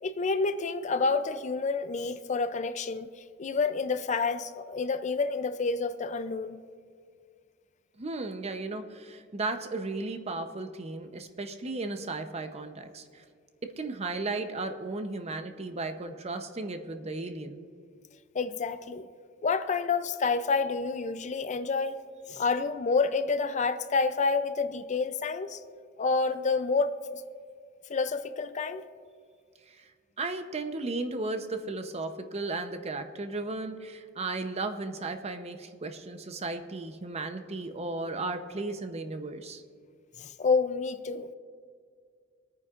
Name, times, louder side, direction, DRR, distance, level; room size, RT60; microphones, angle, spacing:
voice 1, 0.0-3.1 3.4-6.6 18.3-19.1 19.4-22.0 22.3-25.6 26.0-27.0 27.9-28.9 40.2-41.3, left 4 dB, 40° left, 11 dB, 0.4 m, -28 dB
voice 2, 8.0-13.2 13.8-17.6 29.7-29.8 30.2-39.6, right 3 dB, 35° right, 7 dB, 0.7 m, -35 dB
25.5 x 9.4 x 2.5 m, 2.1 s
head